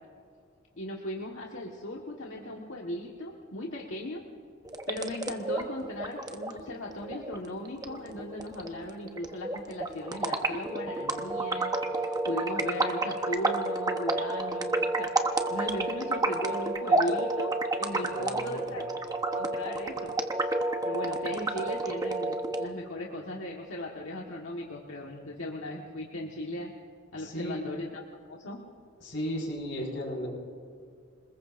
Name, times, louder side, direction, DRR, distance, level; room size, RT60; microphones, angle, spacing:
voice 1, 0.8-4.2 4.9-18.8 19.3-20.2 20.8-26.7 27.1-28.0 28.3-28.6, left 1 dB, 85° left, -1 dB, 1.5 m, -37 dB
sound 1, 4.6-22.6, right 2 dB, 20° right, 1.0 m, -30 dB
voice 2, 18.1-18.8 27.2-27.7 29.0-30.3, equal, 65° left, -1 dB, 5.6 m, -35 dB
27.5 x 20.5 x 2.6 m, 2.3 s
head